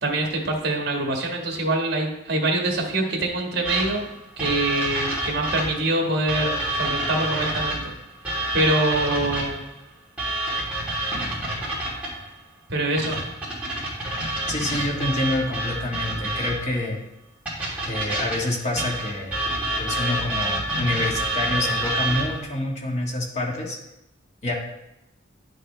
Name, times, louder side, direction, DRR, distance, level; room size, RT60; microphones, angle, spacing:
voice 1, 0.0-4.1 4.4-7.9 8.5-9.6 12.7-13.2, right 2 dB, 55° right, 1 dB, 1.7 m, -24 dB
sound 1, 3.6-5.9 6.3-9.6 10.2-12.2 13.0-16.7 17.5-22.4, right 1 dB, 5° right, 3.1 m, -28 dB
voice 2, 14.5-17.0 17.8-19.4 19.8-23.8 24.4-24.5, left 1 dB, 35° left, -1 dB, 1.6 m, -27 dB
10.5 x 6.5 x 3.3 m, 0.91 s
head